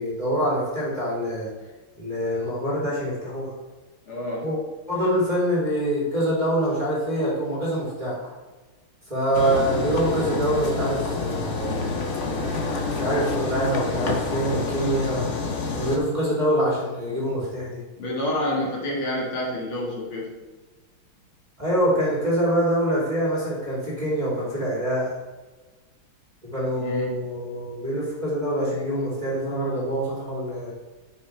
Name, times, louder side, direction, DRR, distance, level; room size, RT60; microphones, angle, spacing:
voice 1, 0.0-1.5 2.0-3.5 4.4-4.6 4.9-8.3 9.1-12.0 13.0-15.3 15.7-17.8 21.6-25.1 26.5-30.7, equal, 20° right, -6 dB, 3.0 m, -25 dB
voice 2, 4.1-4.5 9.4-9.6 18.0-20.3 26.8-27.3, left 1 dB, 70° left, -4 dB, 2.7 m, -28 dB
sound 1, 9.3-16.0, left 3 dB, 45° left, 1.0 m, -28 dB
9.4 x 6.8 x 3.4 m, 1.3 s
omnidirectional pair, 2.4 m